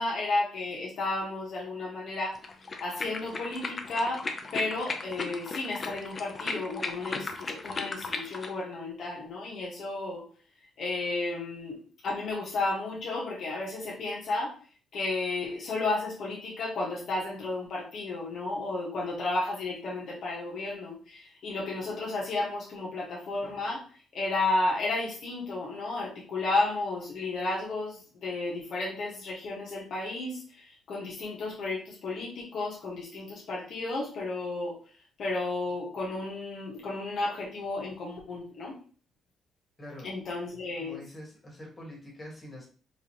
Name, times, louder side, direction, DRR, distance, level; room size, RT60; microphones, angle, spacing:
voice 1, 0.0-2.4 2.8-4.3 4.5-10.2 10.8-14.5 14.9-23.8 24.1-34.7 35.2-38.7 40.0-41.0, left 2 dB, 65° left, -3 dB, 1.2 m, -32 dB
sound 1, 2.4-8.5, left 3 dB, 35° left, 0.6 m, -36 dB
voice 2, 39.8-40.1 40.8-42.7, left 1 dB, 20° left, -2 dB, 1.9 m, -45 dB
4.7 x 2.7 x 3.0 m, 0.40 s
cardioid pair, 90°, 0 cm